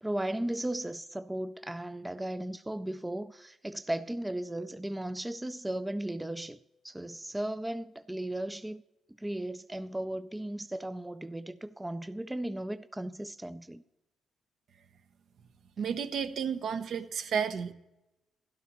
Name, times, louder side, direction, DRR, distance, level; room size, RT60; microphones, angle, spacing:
voice 1, 0.0-6.6 6.8-8.8 9.2-13.8, right 1 dB, 10° right, 0.3 m, -36 dB
voice 2, 15.8-17.7, right 7 dB, 65° right, 0.7 m, -32 dB
12.5 x 11.5 x 3.0 m
cardioid pair, 90°, 0 cm